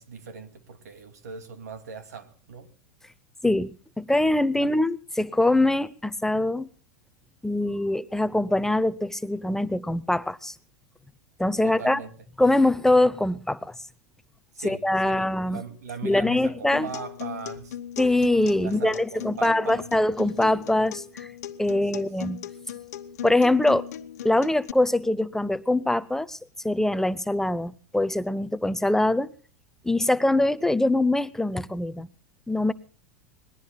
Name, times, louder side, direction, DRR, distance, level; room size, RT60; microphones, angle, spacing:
voice 1, 0.0-2.7 4.5-4.7 11.6-12.1 14.5-17.8 18.6-19.9 21.7-22.1, right 6 dB, 90° right, 2.5 m, -40 dB
voice 2, 3.4-6.7 7.4-10.5 11.4-12.0 12.4-13.7 14.6-15.6 16.0-16.9 18.0-21.3 21.6-22.4 23.2-23.9 24.2-26.4 26.6-29.3 29.8-32.1 32.5-32.7, left 1 dB, 5° left, 0.6 m, -23 dB
Acoustic guitar, 16.7-24.7, left 10 dB, 80° left, 1.2 m, -38 dB
25.5 x 20.0 x 2.3 m
hypercardioid pair, 110°, 9 cm